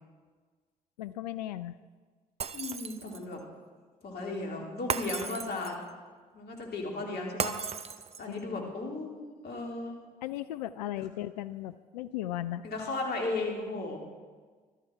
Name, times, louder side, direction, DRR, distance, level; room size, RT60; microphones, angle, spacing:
voice 1, 1.0-1.8 8.3-8.7 10.2-12.7, left 13 dB, 80° left, 13 dB, 0.4 m, -37 dB
Shatter, 2.4-3.3 4.9-5.9 7.4-8.4, right 6 dB, 30° right, 0.8 m, -35 dB
voice 2, 2.5-3.4 4.0-5.8 6.3-7.6 8.2-10.0 12.6-14.0, left 2 dB, 50° left, 0 dB, 3.2 m, -35 dB
15.0 x 13.0 x 4.5 m, 1.5 s
hypercardioid pair, 50°, 20 cm